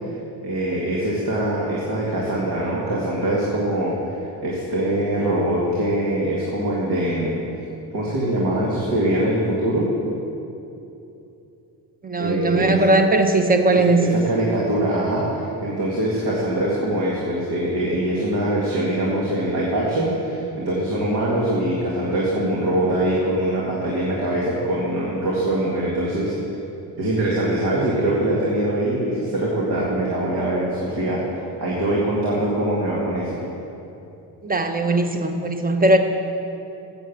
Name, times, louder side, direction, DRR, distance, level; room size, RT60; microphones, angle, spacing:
voice 1, 0.4-7.4 7.9-9.9 12.2-12.8 13.7-26.6 27.0-33.4, right 1 dB, 60° right, -5 dB, 2.0 m, -23 dB
voice 2, 12.0-14.0 34.4-36.0, right 2 dB, 20° right, 6 dB, 0.9 m, -19 dB
9.3 x 7.7 x 7.2 m, 2.8 s
cardioid pair, 110°, 43 cm